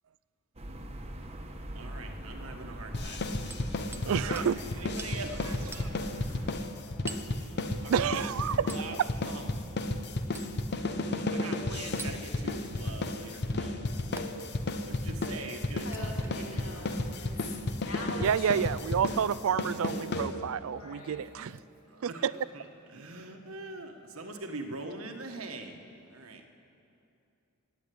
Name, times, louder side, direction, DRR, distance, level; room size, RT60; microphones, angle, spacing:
sound 1, 0.6-6.5, right 1 dB, 30° right, 1.1 m, -42 dB
voice 1, 1.7-3.5 3.8-4.5 4.8-6.0 7.1-8.3 8.6-9.6 11.0-13.8 14.6-16.2 16.6-16.9 21.9-25.8 26.1-26.5, right 3 dB, 90° right, 4 dB, 1.5 m, -43 dB
sound 2, 2.9-20.7, left 2 dB, 55° left, 0.8 m, -33 dB
Hammer, 3.5-4.1 4.4-4.5 5.0-5.2 5.7-5.9 7.1-7.3 8.7-8.9 10.3-10.6 12.0-12.2 14.2-14.3 15.8-16.6 17.3-17.4 18.7-18.9 19.8-20.0 21.5-21.6, right 3 dB, 10° right, 0.5 m, -44 dB
voice 2, 4.0-4.6 7.9-8.7 9.0-9.1 18.2-21.6 22.0-22.3, right 8 dB, 70° right, 19 dB, 0.4 m, -29 dB
voice 3, 6.4-7.6 15.8-18.5 20.7-21.5, left 2 dB, 85° left, -1 dB, 3.0 m, -44 dB
17.0 x 9.6 x 8.4 m, 2.7 s
head